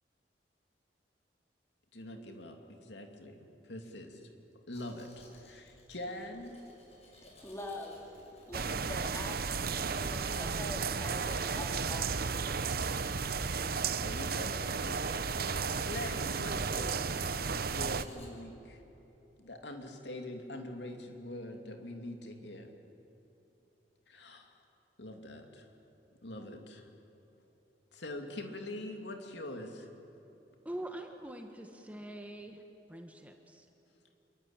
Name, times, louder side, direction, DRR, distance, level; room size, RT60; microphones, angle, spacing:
voice 1, 1.9-4.2 4.7-6.6 14.0-18.8 19.4-22.7 24.1-24.6 25.0-25.7 26.2-26.9 27.9-29.9, left 1 dB, 80° left, 4 dB, 2.8 m, -44 dB
Domestic sounds home sounds, 4.7-18.3, left 2 dB, 40° left, 5.9 m, -58 dB
voice 2, 7.4-8.2 8.5-12.9, left 1 dB, 15° left, 0 dB, 4.3 m, -44 dB
sound 1, 8.5-18.0, right 5 dB, 60° right, 0.9 m, -34 dB
voice 3, 30.6-32.6 32.9-33.7, right 1 dB, 10° right, 4 dB, 1.5 m, -44 dB
27.5 x 24.0 x 9.0 m, 3.0 s
head